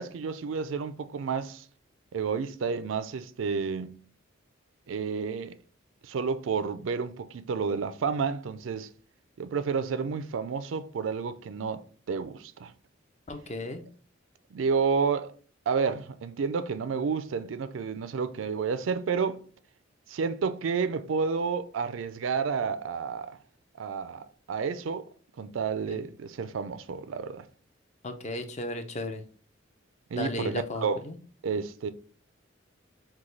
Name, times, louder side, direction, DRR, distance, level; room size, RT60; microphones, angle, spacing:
voice 1, 0.0-1.6 2.1-4.0 4.9-5.6 6.0-8.9 9.4-12.7 14.5-15.3 15.7-19.4 20.1-23.4 23.8-25.1 25.4-27.5 30.1-31.0 31.4-31.9, right 5 dB, 80° right, 0.4 m, -30 dB
voice 2, 13.3-13.8 25.9-26.1 28.0-29.2 30.1-31.1, left 2 dB, 35° left, 0.6 m, -35 dB
6.1 x 2.3 x 3.2 m
head